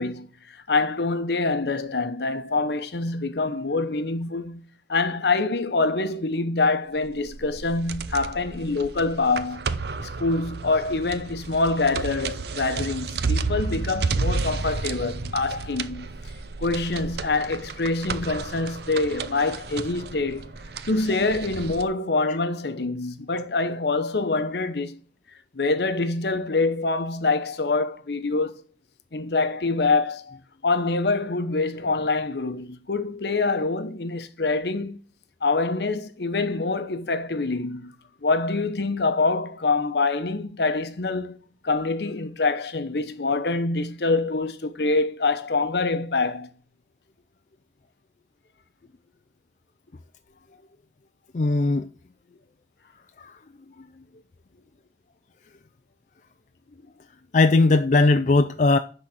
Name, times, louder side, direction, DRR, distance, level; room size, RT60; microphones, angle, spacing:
voice 1, 0.0-9.7 10.0-16.1 16.6-20.5 20.8-25.0 25.5-28.6 29.1-30.4 30.6-35.0 35.4-37.9 38.2-41.4 41.6-46.5, left 3 dB, 65° left, 0.8 m, -25 dB
sound 1, 7.0-21.8, right 4 dB, 65° right, 0.6 m, -32 dB
voice 2, 51.3-51.9 57.3-58.8, left 3 dB, 40° left, 0.4 m, -18 dB
10.5 x 3.9 x 7.3 m
head